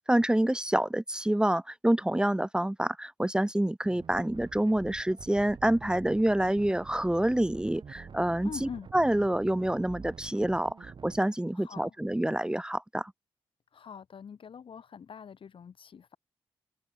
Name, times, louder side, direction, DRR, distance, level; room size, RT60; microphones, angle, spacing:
voice 1, 0.1-13.1, right 1 dB, 10° right, 0.9 m, -27 dB
sound 1, 3.8-11.2, right 6 dB, 55° right, 2.2 m, -47 dB
voice 2, 8.4-8.9 11.5-12.0 13.7-16.2, left 7 dB, 70° left, 4.3 m, -44 dB
open air
cardioid pair, 70°, 9 cm